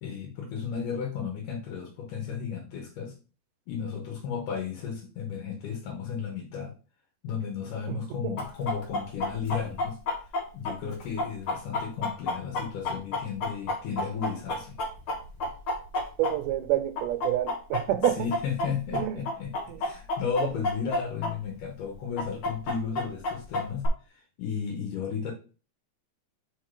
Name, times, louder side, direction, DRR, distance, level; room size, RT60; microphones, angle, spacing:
voice 1, 0.0-3.1 3.7-6.7 7.2-10.0 10.5-14.8 18.1-25.3, left 7 dB, 80° left, 2.7 m, -34 dB
Chicken rooster, 8.4-16.7 17.0-21.3 21.6-21.7 22.2-23.9, left 2 dB, 55° left, 1.7 m, -30 dB
voice 2, 16.2-18.2 18.9-19.2 19.7-19.8, right 13 dB, 90° right, 2.3 m, -28 dB
5.2 x 4.4 x 4.7 m
omnidirectional pair, 3.7 m